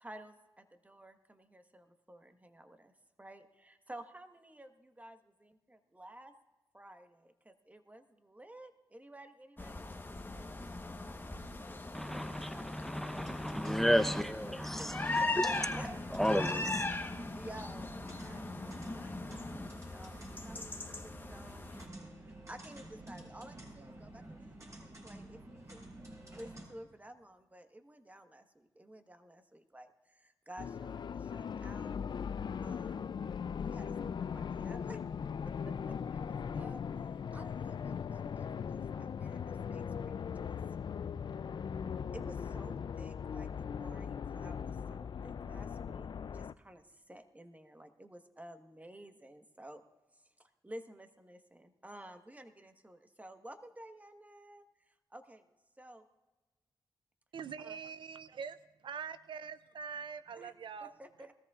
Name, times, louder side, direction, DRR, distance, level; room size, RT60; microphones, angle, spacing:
voice 1, 0.0-0.3 0.8-2.8 3.2-4.7 5.0-5.2 5.9-6.3 6.7-7.1 7.7-8.0 8.3-9.7 13.9-14.0 14.8-14.9 15.2-16.0 17.3-18.6 18.8-19.4 19.9-21.7 22.5-24.4 24.6-25.4 25.7-25.8 26.3-28.4 28.8-29.9 30.5-31.0 31.3-31.9 32.6-33.0 33.6-35.0 35.7-36.8 37.3-38.5 38.9-40.1 40.4-40.5 42.1-43.5 43.8-46.3 46.6-46.8 47.1-49.8 50.6-54.6 55.1-55.4 55.8-56.0 57.6-57.8 60.3-60.5 61.0-61.3, right 1 dB, 15° right, 1.3 m, -52 dB
sound 1, 9.6-21.9, left 2 dB, 25° left, 1.1 m, -39 dB
voice 2, 11.9-16.9, equal, 5° left, 0.8 m, -33 dB
sound 2, 13.1-26.6, right 1 dB, 35° right, 4.7 m, -50 dB
sound 3, 30.6-46.5, left 7 dB, 60° left, 0.4 m, -39 dB
voice 3, 57.3-58.6 58.8-60.9, right 6 dB, 70° right, 0.4 m, -43 dB
20.0 x 14.0 x 2.4 m
cardioid pair, 45°, 9 cm